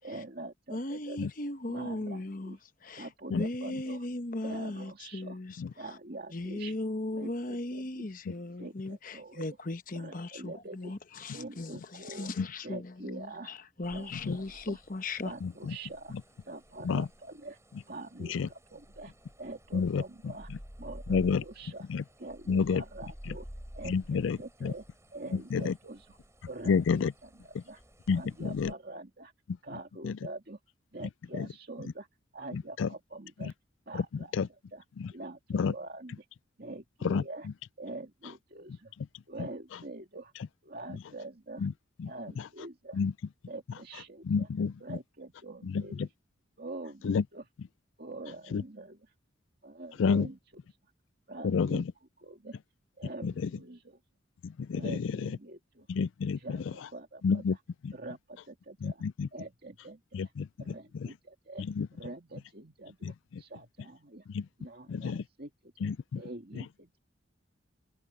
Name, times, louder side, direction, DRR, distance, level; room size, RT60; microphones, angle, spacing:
voice 1, 0.0-1.2 1.7-2.6 2.9-4.1 4.4-5.4 5.8-6.8 7.1-8.1 8.6-9.4 9.9-11.0 11.3-12.3 12.6-13.5 13.9-14.8 15.2-16.2 16.4-17.6 17.9-19.1 19.4-20.5 20.8-21.9 22.2-23.5 23.7-24.8 25.1-26.2 26.5-27.8 28.1-29.3 29.6-30.6 30.9-32.1 32.3-33.5 33.9-34.3 34.7-34.8 35.1-36.3 36.6-37.5 37.8-38.9 39.3-40.3 40.6-41.7 42.1-43.0 43.5-44.5 44.8-46.1 46.6-47.5 48.0-49.0 49.6-50.4 51.3-51.8 52.2-52.6 53.0-54.0 54.7-55.9 56.4-57.4 57.9-59.0 59.3-60.2 60.6-61.7 62.0-64.3 64.6-65.9 66.2-67.0, right 2 dB, 50° right, 2.4 m, -45 dB
voice 2, 0.7-6.0 6.3-15.3, left 2 dB, 45° left, 1.0 m, -38 dB
sound 1, 13.8-28.7, equal, 15° right, 5.3 m, -51 dB
voice 3, 15.4-15.8 16.8-17.1 18.3-18.5 19.7-20.0 21.1-21.4 21.9-22.0 22.5-22.8 23.9-24.7 25.3-25.7 26.7-27.1 27.5-27.6 28.1-28.7 30.0-30.2 31.3-31.5 32.5-32.9 33.4-33.5 33.9-34.0 34.3-34.5 35.0-35.1 35.5-35.7 37.0-37.5 39.4-39.5 41.6-41.7 42.0-42.1 42.9-43.1 44.2-45.0 45.6-46.1 47.0-47.2 48.5-48.6 50.0-50.3 51.4-51.9 53.2-53.5 54.4-55.4 55.9-56.6 57.2-57.6 57.8-57.9 58.8-59.3 60.1-61.1 61.6-61.9 63.0-63.4 64.3-64.5 64.9-65.2 65.8-66.2, left 5 dB, 75° left, 0.4 m, -30 dB
head